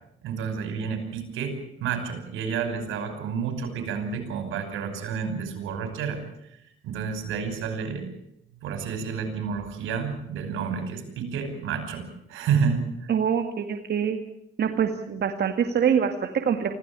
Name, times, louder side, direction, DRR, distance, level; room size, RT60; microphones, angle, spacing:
voice 1, 0.2-6.2 6.5-8.1 8.6-13.1, right 6 dB, 90° right, 7 dB, 5.8 m, -30 dB
voice 2, 13.1-14.2 14.6-16.7, right 7 dB, 55° right, 5 dB, 2.0 m, -24 dB
25.5 x 16.5 x 8.9 m, 0.78 s
cardioid pair, 90°, 20 cm